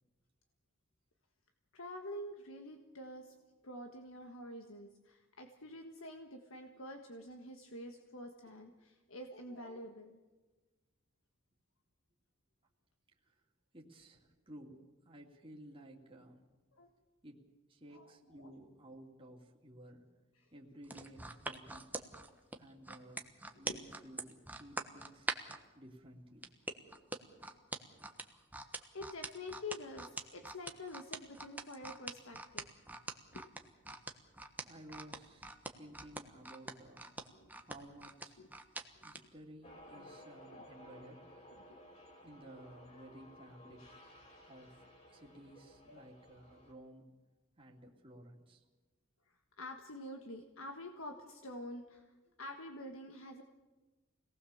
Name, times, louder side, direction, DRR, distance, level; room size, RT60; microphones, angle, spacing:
voice 1, 1.7-10.2 16.7-16.9 17.9-18.1 18.4-18.5 20.3-20.5 23.7-23.8 28.6-32.7 33.3-33.4 34.9-35.0 37.4-37.5 38.4-38.5 41.7-41.8 45.9-46.1 49.3-52.1 52.4-53.4, left 1 dB, 70° left, 4 dB, 1.6 m, -48 dB
voice 2, 13.7-16.4 17.2-20.0 20.5-21.9 22.6-25.3 25.7-26.5 34.6-37.1 37.6-38.4 39.0-41.2 42.2-44.0 44.5-47.1 47.6-48.6, right 1 dB, 25° right, -1 dB, 2.8 m, -55 dB
sound 1, 20.8-25.6 26.4-39.2 39.7-39.8, right 2 dB, 10° right, 1.3 m, -43 dB
sound 2, 39.6-46.7, equal, 35° left, 5.2 m, -57 dB
25.5 x 18.5 x 7.2 m, 1.2 s
head